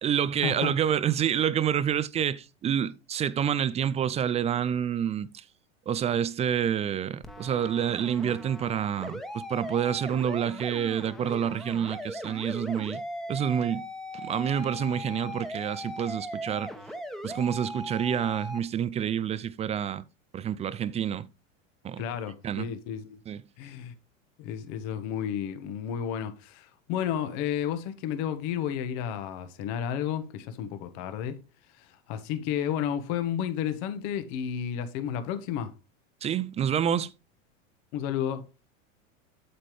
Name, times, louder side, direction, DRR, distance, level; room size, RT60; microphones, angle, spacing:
voice 1, 0.0-5.5 5.9-13.0 13.3-13.9 14.1-16.7 17.2-20.1 20.3-21.3 21.8-22.0 22.4-22.7 23.3-23.4 36.2-37.1, right 9 dB, 20° right, 0.3 m, -28 dB
sound 1, 7.2-18.6, equal, ahead, 1.2 m, -39 dB
voice 2, 22.0-23.2 23.6-23.9 24.4-31.4 31.8-35.7 37.9-38.4, left 9 dB, 55° left, 1.4 m, -32 dB
8.5 x 7.5 x 3.1 m
hypercardioid pair, 100°, 39 cm